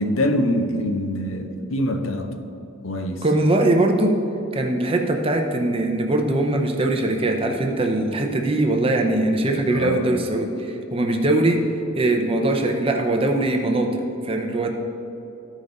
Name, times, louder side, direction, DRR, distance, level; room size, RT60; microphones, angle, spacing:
voice 1, 0.0-2.3 2.8-3.2 9.7-10.1, left 1 dB, 70° left, 6 dB, 0.7 m, -24 dB
voice 2, 3.2-4.2 4.5-11.6 11.9-14.7, right 2 dB, 25° right, 3 dB, 0.6 m, -21 dB
13.5 x 5.1 x 4.0 m, 2.9 s
head